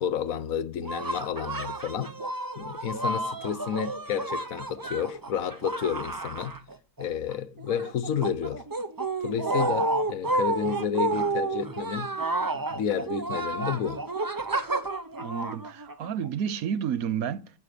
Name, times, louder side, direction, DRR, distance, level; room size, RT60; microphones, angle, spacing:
voice 1, 0.0-2.1 2.6-6.6 7.0-8.6 9.2-12.1 12.5-14.0, left 8 dB, 60° left, 1.2 m, -31 dB
sound 1, 0.8-7.0 7.3-16.3, right 2 dB, 30° right, 0.4 m, -31 dB
voice 2, 15.2-17.5, right 8 dB, 65° right, 1.2 m, -30 dB
14.0 x 7.6 x 6.8 m
omnidirectional pair, 1.7 m